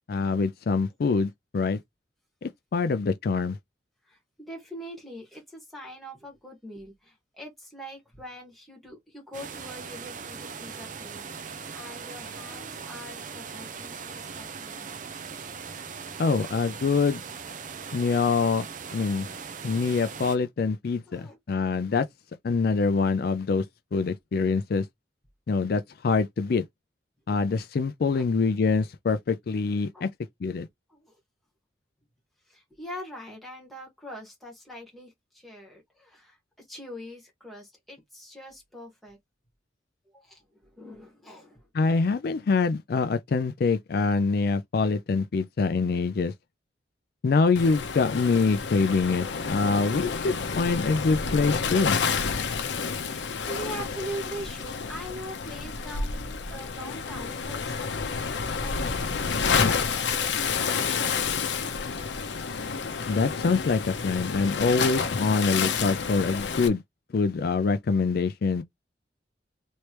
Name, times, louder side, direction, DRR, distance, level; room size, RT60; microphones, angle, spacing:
voice 1, 0.1-1.8 2.4-3.6 16.2-17.2 17.9-18.7 18.9-19.3 19.6-22.1 22.4-23.6 23.9-24.9 25.5-26.6 27.3-30.1 30.4-30.7 41.7-46.3 47.2-52.0 63.1-66.8 67.1-68.6, left 4 dB, 55° left, 0.4 m, -25 dB
voice 2, 4.0-14.9 21.1-21.4 28.1-28.2 29.9-30.1 30.9-31.1 32.5-39.2 40.1-41.6 52.7-61.4 63.7-63.8, equal, ahead, 1.6 m, -43 dB
sound 1, 9.3-20.4, right 6 dB, 45° right, 0.6 m, -40 dB
Waves surf, 47.6-66.7, left 5 dB, 90° left, 0.7 m, -29 dB
3.2 x 3.1 x 3.0 m
head